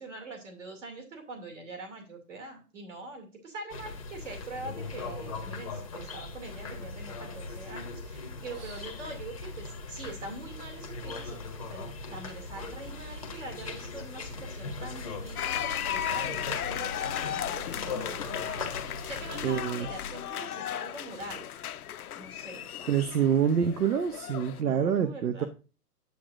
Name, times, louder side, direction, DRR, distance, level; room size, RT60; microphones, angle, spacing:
voice 1, 0.0-18.7 19.0-21.6 22.2-22.9 24.6-25.5, right 2 dB, 50° right, 5 dB, 2.5 m, -44 dB
sound 1, 3.7-19.7, left 3 dB, 20° left, 0.8 m, -39 dB
sound 2, 15.4-24.6, left 10 dB, 65° left, 0.5 m, -35 dB
voice 2, 19.4-19.9 22.9-25.5, right 8 dB, 70° right, 10 dB, 0.9 m, -26 dB
8.3 x 7.8 x 2.5 m, 0.33 s
hypercardioid pair, 175°, 48 cm